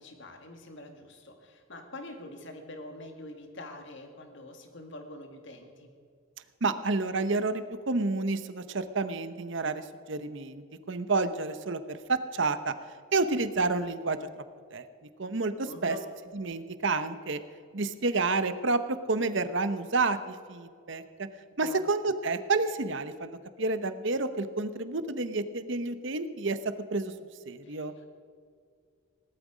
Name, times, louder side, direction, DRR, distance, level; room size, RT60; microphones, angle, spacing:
voice 1, 0.0-5.9 15.6-16.0 21.6-21.8 27.6-28.1, left 1 dB, 55° left, 5 dB, 2.0 m, -45 dB
voice 2, 6.6-12.7 13.1-14.2 14.7-14.8 15.2-15.9 16.3-17.4 17.7-21.3 21.6-27.1 27.5-27.9, right 3 dB, 55° right, 12 dB, 0.8 m, -30 dB
18.0 x 12.0 x 5.1 m, 2.2 s
head